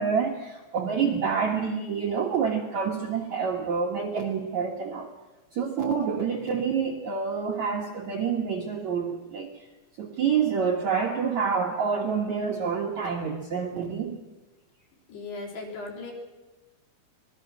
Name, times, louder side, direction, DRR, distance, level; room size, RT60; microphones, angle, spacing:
voice 1, 0.0-5.1 5.5-9.7 10.0-14.2, right 6 dB, 90° right, 0 dB, 1.6 m, -27 dB
voice 2, 15.1-16.1, left 3 dB, 55° left, 0 dB, 5.2 m, -37 dB
25.5 x 20.5 x 6.2 m, 1.2 s
omnidirectional pair, 6.0 m